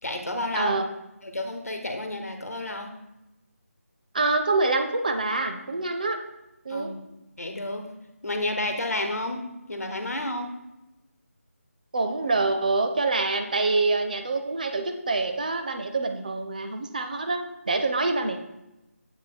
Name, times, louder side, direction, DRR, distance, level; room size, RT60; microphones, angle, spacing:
voice 1, 0.0-0.7 1.2-2.9 6.7-7.0 7.4-7.8 8.2-9.4 9.7-10.5, left 1 dB, 75° left, 5 dB, 1.1 m, -30 dB
voice 2, 0.5-0.9 4.1-6.2 6.6-6.9 11.9-18.4, right 3 dB, 35° right, 6 dB, 0.4 m, -26 dB
7.8 x 3.1 x 4.4 m, 0.94 s
figure-of-eight pair, 160°, 8 cm